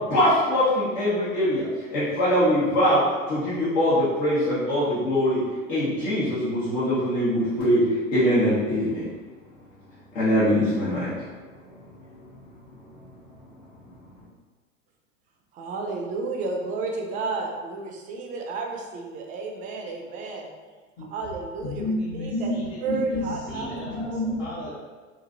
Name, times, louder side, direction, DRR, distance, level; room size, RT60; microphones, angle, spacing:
voice 1, 0.0-5.4 5.7-9.0 10.1-11.1, equal, 80° left, -12 dB, 1.2 m, -22 dB
voice 2, 15.5-20.5 21.1-22.5 22.8-23.7, right 3 dB, 20° right, 1 dB, 0.3 m, -32 dB
voice 3, 21.6-24.7, left 1 dB, 50° left, -8 dB, 0.9 m, -30 dB
3.0 x 2.5 x 2.5 m, 1.4 s
hypercardioid pair, 95°, 40 cm